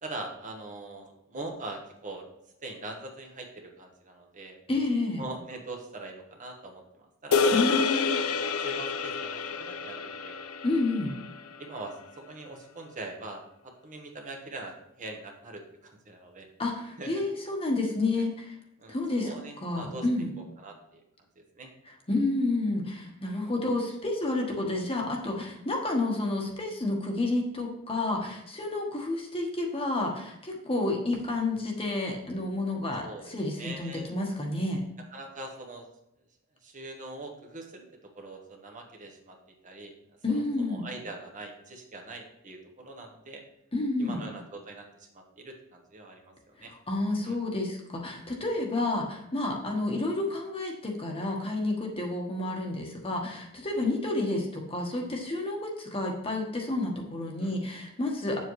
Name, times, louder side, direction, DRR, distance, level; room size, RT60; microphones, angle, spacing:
voice 1, 0.0-2.3 2.6-4.6 5.2-7.8 8.1-8.2 8.6-10.4 11.6-11.9 12.3-16.5 17.0-17.1 18.8-19.0 19.2-20.0 20.6-21.0 21.4-21.7 33.0-34.1 35.1-35.8 36.6-37.9 38.2-39.4 39.6-39.9 40.3-43.4 44.0-46.3 46.6-46.7 47.2-47.4 53.8-53.9 57.4-57.5, right 2 dB, 35° right, 2 dB, 1.1 m, -42 dB
voice 2, 4.7-5.2 7.5-8.2 10.6-11.1 16.6-18.6 18.9-19.3 19.6-20.3 22.1-34.8 40.2-40.9 43.7-44.2 46.6-58.4, left 2 dB, 25° left, 1 dB, 1.2 m, -30 dB
sound 1, 7.3-11.8, left 5 dB, 70° left, 0.5 m, -29 dB
8.2 x 7.3 x 3.2 m, 0.79 s
head